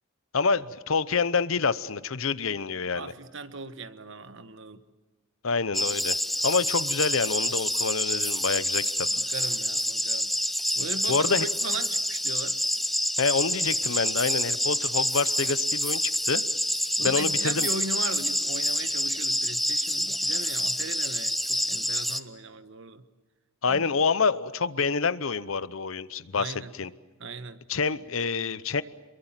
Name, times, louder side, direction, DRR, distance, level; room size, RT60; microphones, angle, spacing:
voice 1, 0.3-3.1 5.4-6.2 6.4-9.1 11.1-11.5 13.2-16.4 17.0-17.7 23.6-26.9 27.7-28.8, left 5 dB, 70° left, 16 dB, 0.8 m, -27 dB
voice 2, 2.9-4.8 9.3-10.3 10.8-12.6 17.0-23.0 23.7-23.8 26.3-26.7 27.2-27.6, right 3 dB, 60° right, 11 dB, 1.3 m, -38 dB
sound 1, 5.7-22.2, equal, ahead, 0.7 m, -27 dB
27.5 x 22.5 x 7.4 m, 1.2 s
head